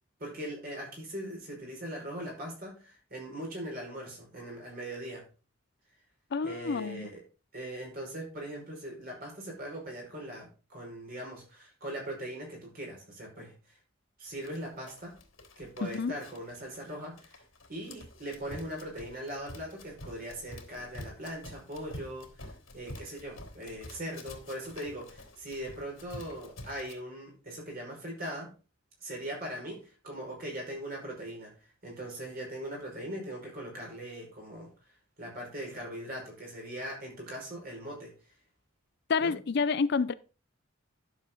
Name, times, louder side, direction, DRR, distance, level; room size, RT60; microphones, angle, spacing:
voice 1, 0.2-5.2 6.4-7.2 7.5-13.8 14.2-15.2 15.6-17.4 17.7-28.5 29.0-34.7 35.2-38.1 39.2-39.3, right 1 dB, 45° right, 5.2 m, -40 dB
voice 2, 6.3-7.1 15.8-16.1 39.1-40.1, left 5 dB, 55° left, 0.5 m, -29 dB
Run, 14.4-26.9, left 1 dB, 85° left, 3.2 m, -48 dB
11.5 x 7.3 x 3.8 m
head